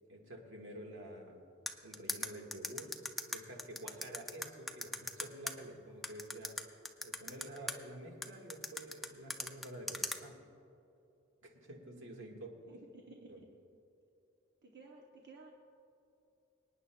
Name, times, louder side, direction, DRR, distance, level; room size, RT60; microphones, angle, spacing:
voice 1, 0.1-1.4 1.8-2.9 3.3-10.4 11.4-12.8 13.3-13.4, right 1 dB, 75° right, 1 dB, 1.7 m, -49 dB
sound 1, 1.7-5.5 6.0-7.7 8.2-10.2, left 1 dB, ahead, 0.4 m, -38 dB
voice 2, 12.0-12.4 12.7-13.4 14.6-15.5, right 3 dB, 50° right, -1 dB, 0.9 m, -55 dB
26.0 x 9.6 x 2.3 m, 2.8 s
head